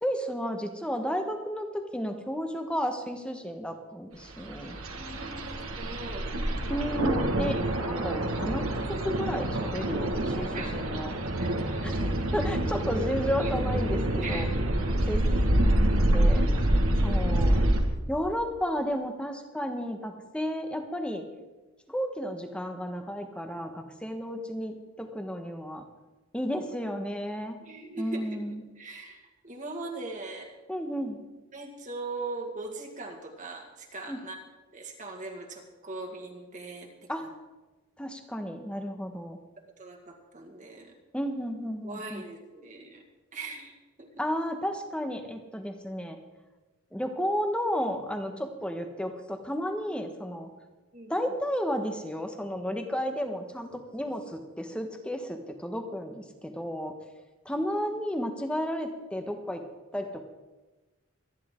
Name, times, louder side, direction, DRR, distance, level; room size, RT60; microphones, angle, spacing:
voice 1, 0.0-4.8 6.7-11.1 11.8-14.5 15.0-15.4 15.7-16.5 17.0-17.6 18.1-21.2 21.9-25.8 26.3-27.6 28.0-28.6 30.7-31.2 34.1-34.2 37.1-37.3 38.0-39.4 41.1-42.2 44.2-46.2 46.9-50.5 51.1-56.9 57.4-59.6 59.9-60.2, equal, 5° left, 5 dB, 1.2 m, -33 dB
sound 1, 4.4-17.8, right 1 dB, 75° right, 1.7 m, -27 dB
voice 2, 5.0-6.3 10.5-10.8 11.4-12.0 13.4-13.6 14.2-14.6 16.9-17.8 27.6-30.5 31.5-34.4 34.7-37.3 39.8-40.9 41.8-43.0 43.3-43.7 44.0-44.1 50.9-51.1, right 3 dB, 35° right, 2 dB, 1.9 m, -40 dB
25.0 x 10.5 x 3.7 m, 1.2 s
head